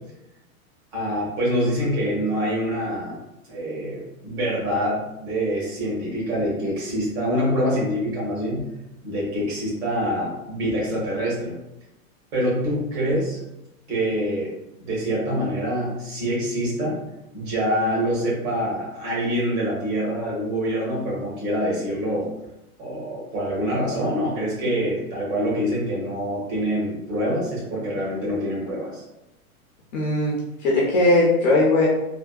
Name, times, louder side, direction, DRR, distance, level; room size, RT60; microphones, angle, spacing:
voice 1, 0.9-3.2 3.5-8.6 9.0-11.5 12.3-13.4 13.9-14.5 14.8-17.0 17.3-22.3 22.8-29.0, equal, 45° right, -5 dB, 1.5 m, -25 dB
voice 2, 29.9-30.3 30.6-31.9, left 2 dB, 30° left, -4 dB, 0.4 m, -18 dB
3.4 x 2.1 x 2.2 m, 0.91 s
supercardioid pair, 150°, 43 cm